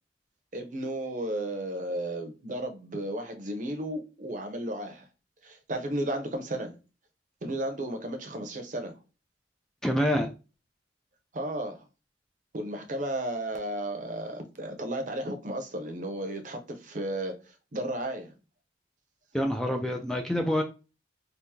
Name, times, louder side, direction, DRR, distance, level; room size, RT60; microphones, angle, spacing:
voice 1, 0.5-5.1 5.4-6.8 7.4-9.0 11.3-11.8 12.5-18.3, right 1 dB, 45° right, 0.7 m, -34 dB
voice 2, 9.8-10.3 19.3-20.6, equal, 5° left, 0.3 m, -26 dB
2.8 x 2.6 x 3.6 m
head